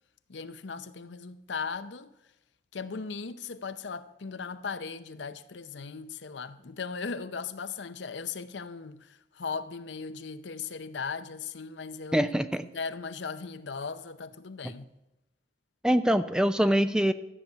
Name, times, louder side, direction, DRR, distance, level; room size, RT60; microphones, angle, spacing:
voice 1, 0.3-2.1 2.7-12.3 12.7-14.9, left 5 dB, 85° left, 0.7 m, -38 dB
voice 2, 12.1-12.6 14.6-14.7 15.8-17.1, equal, 5° right, 0.4 m, -24 dB
13.5 x 7.0 x 9.1 m
head